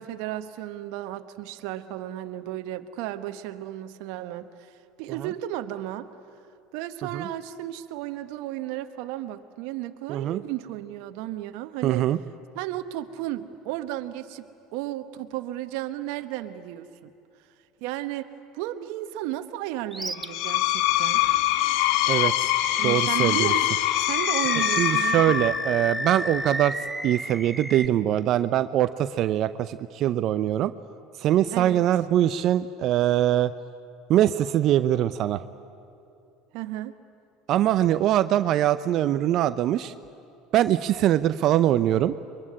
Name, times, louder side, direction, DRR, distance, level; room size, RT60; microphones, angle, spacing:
voice 1, 0.0-6.1 6.7-12.1 12.5-17.1 17.8-18.3 18.5-21.3 22.8-23.7 24.0-25.4 31.5-31.8 36.5-36.9, right 14 dB, 70° right, 9 dB, 1.1 m, -34 dB
voice 2, 10.1-10.4 11.8-12.2 22.1-22.5 22.8-23.5 24.8-26.7 27.0-30.7 31.2-33.5 34.1-35.4 37.5-39.9 40.5-42.1, right 12 dB, 55° right, 13 dB, 0.7 m, -22 dB
Animal, 19.9-20.3 20.7-20.9 22.5-23.2 23.9-27.9, right 1 dB, 5° right, 1.1 m, -31 dB
Screech, 20.2-25.7, left 15 dB, 70° left, 0.9 m, -24 dB
23.5 x 23.0 x 9.9 m, 2.6 s
hypercardioid pair, 85°, 0 cm